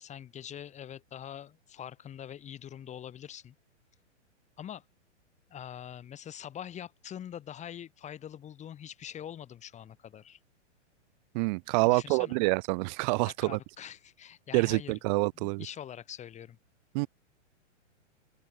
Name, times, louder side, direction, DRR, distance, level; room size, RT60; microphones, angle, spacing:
voice 1, 0.0-3.6 4.6-4.8 5.5-10.4 11.8-12.4 13.3-14.9 15.4-16.6, left 10 dB, 20° left, 7.5 m, -44 dB
voice 2, 11.3-13.6 14.5-15.6 16.9-17.1, right 30 dB, 35° right, 2.3 m, -27 dB
open air
hypercardioid pair, 145°, 37 cm